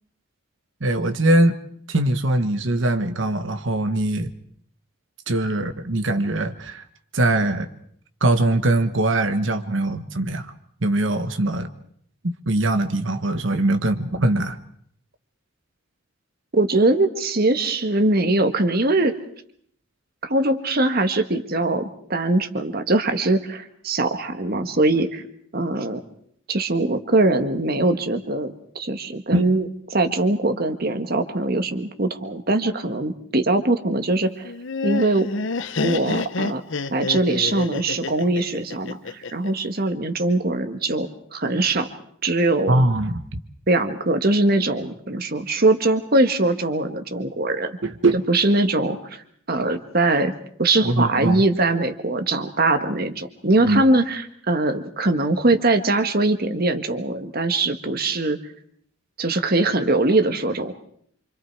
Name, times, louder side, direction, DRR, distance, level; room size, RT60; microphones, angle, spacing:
voice 1, 0.8-1.6 1.9-4.3 5.3-6.8 7.1-7.7 8.2-10.5 10.8-11.7 12.2-14.6 29.3-29.5 42.7-43.4 47.8-48.2 50.8-51.4 53.6-53.8, right 1 dB, 60° right, 8 dB, 1.2 m, -21 dB
voice 2, 16.5-19.1 20.2-25.2 25.5-26.0 26.5-34.5 34.8-35.3 35.8-36.6 36.9-41.9 42.2-42.8 43.7-47.8 48.3-49.2 49.5-50.3 50.6-58.4 59.2-60.7, right 2 dB, 45° right, 7 dB, 1.6 m, -22 dB
Laughter, 34.4-39.5, left 3 dB, 60° left, 0.9 m, -28 dB
27.5 x 26.0 x 4.7 m, 0.64 s
head